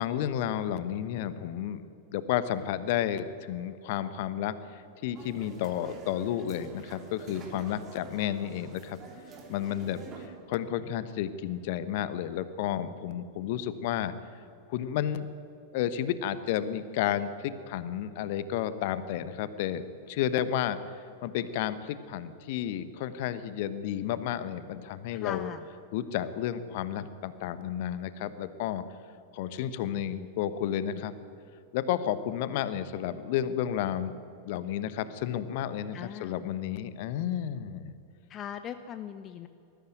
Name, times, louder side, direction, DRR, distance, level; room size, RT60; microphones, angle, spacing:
voice 1, 0.0-1.8 2.1-9.0 9.5-14.4 14.7-15.3 15.7-20.8 21.2-25.5 25.9-28.8 29.3-31.1 31.7-37.9, left 10 dB, 50° left, 14 dB, 1.1 m, -32 dB
sound 1, 5.1-10.3, right 4 dB, 30° right, 3.2 m, -47 dB
voice 2, 25.1-25.6 35.9-36.4 38.3-39.5, left 9 dB, 30° left, 11 dB, 0.8 m, -39 dB
20.0 x 14.0 x 9.4 m, 2.7 s
figure-of-eight pair, 90°, 0 cm